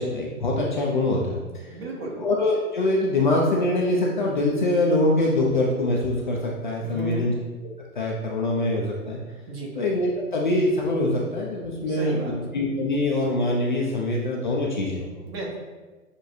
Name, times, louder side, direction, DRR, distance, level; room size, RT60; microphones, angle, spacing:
voice 1, 0.0-1.7 2.2-7.3 7.9-9.2 9.7-15.2, left 1 dB, 35° left, -2 dB, 0.4 m, -24 dB
voice 2, 1.7-2.2 6.8-7.3 9.5-9.7 11.9-12.3 15.3-15.6, right 2 dB, 45° right, -2 dB, 1.1 m, -34 dB
6.4 x 2.2 x 2.6 m, 1.3 s
figure-of-eight pair, 125°, 44 cm